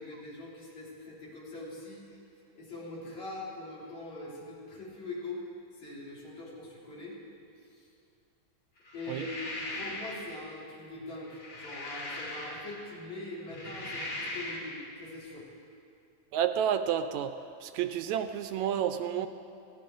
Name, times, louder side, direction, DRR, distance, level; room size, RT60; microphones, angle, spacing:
voice 1, 0.0-2.1 2.5-5.4 5.8-7.2 7.8-7.9 8.9-15.4, left 2 dB, 65° left, -5 dB, 4.7 m, -42 dB
sound 1, 8.9-10.3 11.2-12.9 13.4-14.8, left 2 dB, 40° left, 3.3 m, -39 dB
voice 2, 16.3-17.4 17.6-19.3, right 9 dB, 80° right, 9 dB, 1.8 m, -30 dB
22.0 x 16.0 x 3.9 m, 2.6 s
omnidirectional pair, 3.4 m